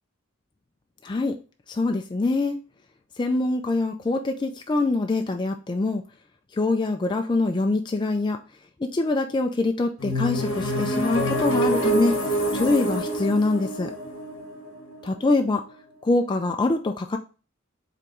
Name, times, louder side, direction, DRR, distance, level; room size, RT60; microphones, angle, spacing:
voice 1, 1.0-1.4 1.7-2.6 3.2-6.0 6.5-8.4 8.8-12.2 12.5-13.9 15.0-15.6 16.0-17.2, left 2 dB, 20° left, 5 dB, 0.3 m, -24 dB
sound 1, 10.0-15.8, right 1 dB, 65° left, 1.2 m, -26 dB
4.8 x 3.5 x 3.0 m, 0.34 s
head